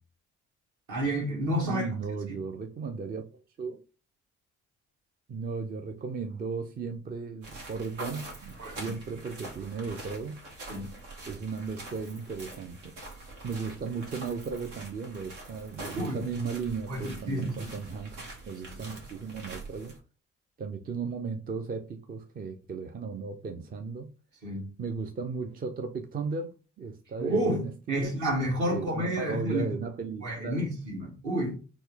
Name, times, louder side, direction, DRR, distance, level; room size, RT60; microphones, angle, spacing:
voice 1, 0.9-1.9 8.6-8.9 10.7-10.9 15.9-16.2 16.9-17.7 18.7-18.8 24.4-24.7 27.2-27.6 27.9-29.8 30.2-31.6, equal, 55° right, 1.6 m, -30 dB
voice 2, 1.6-3.8 5.3-10.4 11.3-12.9 13.4-18.2 18.5-20.0 20.6-24.1 24.8-28.1 28.7-30.7, right 5 dB, 25° right, 0.4 m, -36 dB
sound 1, 7.4-20.0, right 2 dB, 75° right, 1.1 m, -45 dB
4.2 x 2.0 x 3.3 m
figure-of-eight pair, 45°, 37 cm